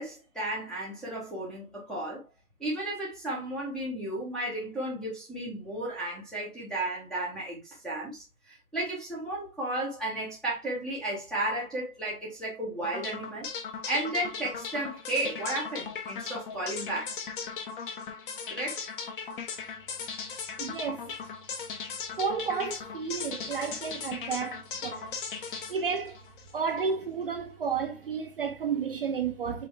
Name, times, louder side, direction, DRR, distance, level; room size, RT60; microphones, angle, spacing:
voice 1, 0.0-2.3 2.6-13.5 13.9-17.2 18.5-18.9, right 1 dB, ahead, 0.6 m, -34 dB
sound 1, 12.8-26.9, left 5 dB, 35° left, 1.0 m, -38 dB
voice 2, 20.6-21.0 22.2-25.2 25.7-26.1 26.5-29.7, right 6 dB, 40° right, 0.5 m, -32 dB
5.1 x 3.3 x 3.1 m
hypercardioid pair, 140°, 45 cm